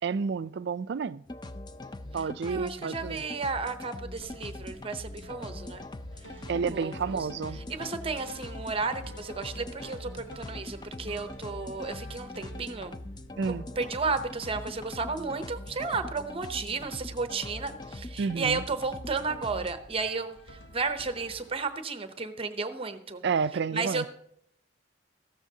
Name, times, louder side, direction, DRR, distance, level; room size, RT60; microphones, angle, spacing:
voice 1, 0.0-1.2 2.1-3.2 6.5-7.6 13.4-13.6 18.2-18.6 23.2-24.1, right 5 dB, 60° right, 0.4 m, -30 dB
sound 1, 1.3-19.7, left 2 dB, 20° left, 0.5 m, -42 dB
voice 2, 2.1-5.8 6.7-7.3 7.5-10.1 10.4-13.0 13.8-23.2 23.7-24.1, right 4 dB, 30° right, 0.7 m, -33 dB
sound 2, 4.2-22.0, equal, 70° left, 1.4 m, -50 dB
15.0 x 13.5 x 2.8 m
head